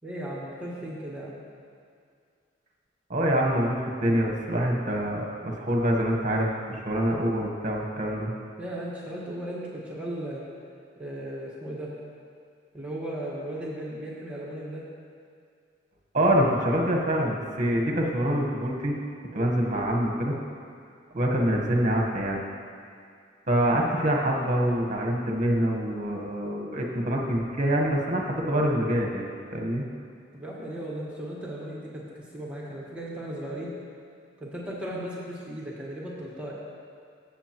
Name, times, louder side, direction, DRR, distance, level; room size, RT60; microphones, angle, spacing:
voice 1, 0.0-1.4 8.6-10.4 11.0-11.9 12.7-14.8 30.3-32.0 32.3-33.7 34.4-36.5, right 1 dB, 5° right, -5 dB, 1.4 m, -36 dB
voice 2, 3.1-8.3 16.1-18.9 19.3-20.3 21.1-22.4 23.5-29.9, right 1 dB, 40° right, 0 dB, 1.2 m, -25 dB
15.0 x 7.2 x 3.0 m, 2.2 s
head